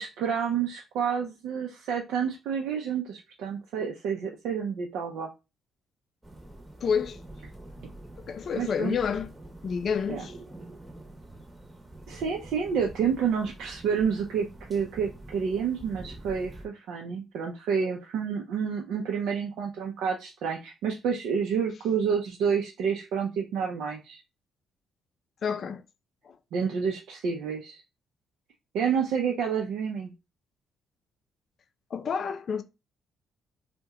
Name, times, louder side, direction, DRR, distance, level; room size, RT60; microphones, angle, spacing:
voice 1, 0.0-5.3 8.5-9.0 10.1-10.2 12.1-24.2 26.5-27.8 28.7-30.1, right 6 dB, 85° right, 0.5 m, -29 dB
sound 1, 6.2-16.7, right 1 dB, 15° right, 0.8 m, -46 dB
voice 2, 6.8-7.2 8.2-9.3 9.6-10.3 25.4-25.8 26.3-26.4 31.9-32.6, left 6 dB, 55° left, 0.4 m, -29 dB
2.8 x 2.1 x 3.5 m
cardioid pair, 90°, 0 cm